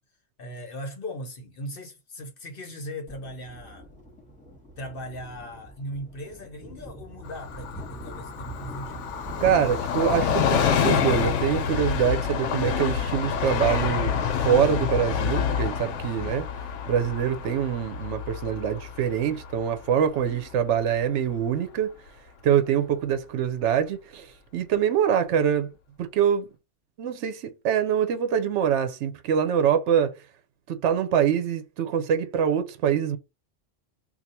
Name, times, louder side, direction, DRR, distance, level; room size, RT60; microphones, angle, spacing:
voice 1, 0.4-4.0 4.8-9.1 20.2-20.5, equal, 55° left, 0.9 m, -38 dB
Thunder, 3.1-17.9, right 2 dB, 5° left, 1.4 m, -42 dB
Train, 7.3-20.6 20.9-21.0, left 7 dB, 85° left, 0.9 m, -28 dB
voice 2, 9.4-14.1 14.4-16.5 16.9-21.9 22.4-25.7 26.0-26.5 27.0-30.1 30.7-33.2, right 8 dB, 80° right, 0.9 m, -24 dB
2.7 x 2.3 x 4.2 m
omnidirectional pair, 1.2 m